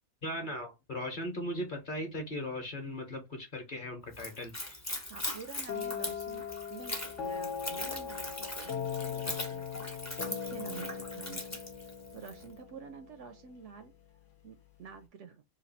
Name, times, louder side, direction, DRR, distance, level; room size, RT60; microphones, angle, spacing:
voice 1, 0.2-4.8, left 1 dB, 40° left, 1.1 m, -38 dB
Splash splatter / Trickle dribble, 4.1-12.4, left 1 dB, 15° left, 0.6 m, -40 dB
voice 2, 5.1-6.4 6.7-9.9 10.3-11.6 12.1-13.9 14.4-15.4, right 6 dB, 65° right, 0.8 m, -48 dB
sound 1, 5.7-13.4, left 7 dB, 65° left, 1.0 m, -39 dB
3.2 x 2.6 x 4.0 m
omnidirectional pair, 1.4 m